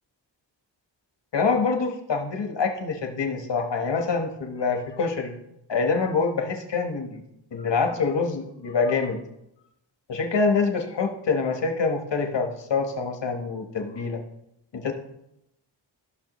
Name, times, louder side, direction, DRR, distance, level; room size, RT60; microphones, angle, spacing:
voice 1, 1.3-5.3 5.7-7.2 7.5-9.2 10.1-14.2 14.7-14.9, left 4 dB, 70° left, 4 dB, 1.2 m, -25 dB
13.0 x 6.2 x 3.0 m, 0.83 s
wide cardioid pair, 100°, 44 cm